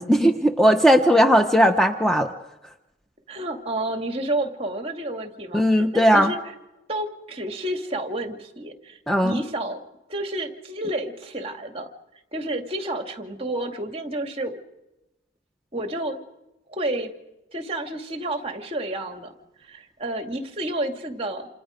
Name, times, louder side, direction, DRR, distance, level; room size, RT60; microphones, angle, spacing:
voice 1, 0.0-2.3 5.5-6.3 9.1-9.4, equal, ahead, 5 dB, 0.9 m, -18 dB
voice 2, 3.3-6.4 6.9-9.8 10.1-11.9 12.3-14.6 15.7-16.2 16.7-17.1 17.5-19.3 19.6-21.5, right 1 dB, 30° right, 5 dB, 2.4 m, -30 dB
28.5 x 28.5 x 5.2 m, 0.94 s
head